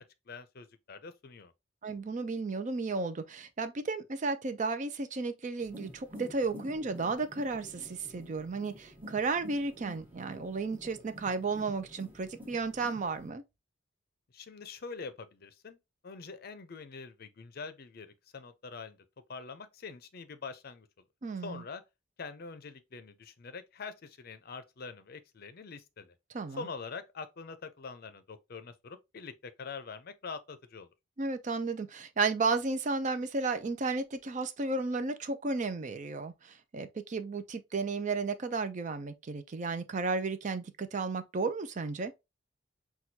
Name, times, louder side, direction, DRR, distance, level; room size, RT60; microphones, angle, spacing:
voice 1, 0.3-1.5 14.3-19.0 19.3-20.9 21.4-21.8 22.2-26.1 26.5-30.9, left 4 dB, 50° left, 0.5 m, -44 dB
voice 2, 1.8-13.4 21.2-21.6 26.3-26.7 31.2-42.1, right 4 dB, 40° right, 0.5 m, -33 dB
sound 1, 5.6-13.3, equal, 10° right, 1.3 m, -49 dB
6.0 x 2.3 x 2.7 m
head